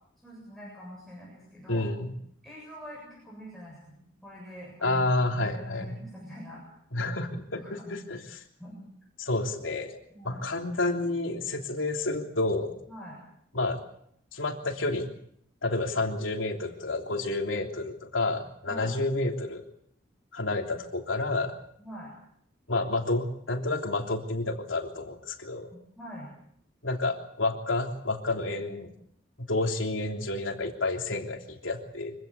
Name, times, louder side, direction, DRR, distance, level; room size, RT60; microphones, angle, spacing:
voice 1, 0.2-1.9 2.4-6.6 7.0-7.2 7.5-8.0 8.6-8.8 10.1-10.4 12.9-13.2 18.7-19.0 21.8-22.1 25.7-26.3, equal, ahead, -5 dB, 7.6 m, -44 dB
voice 2, 1.7-2.1 4.8-6.0 6.9-7.6 7.9-8.4 9.2-10.0 10.2-12.8 13.5-13.8 14.3-15.1 15.6-19.6 20.3-21.6 22.7-25.7 26.8-28.9 29.4-32.1, left 2 dB, 85° left, 3 dB, 3.2 m, -30 dB
25.0 x 16.0 x 8.2 m, 0.70 s
head